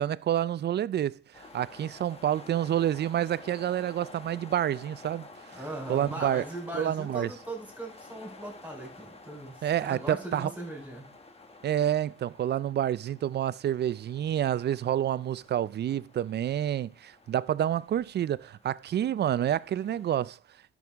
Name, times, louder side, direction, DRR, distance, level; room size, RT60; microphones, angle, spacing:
voice 1, 0.0-5.6 5.9-6.4 6.7-7.3 9.6-10.5 11.6-20.4, right 11 dB, 55° right, 0.4 m, -28 dB
sound 1, 1.3-20.1, left 3 dB, 30° left, 1.2 m, -51 dB
voice 2, 5.5-11.1, right 1 dB, 10° right, 4.1 m, -39 dB
12.0 x 6.3 x 3.5 m
cardioid pair, 100°, 21 cm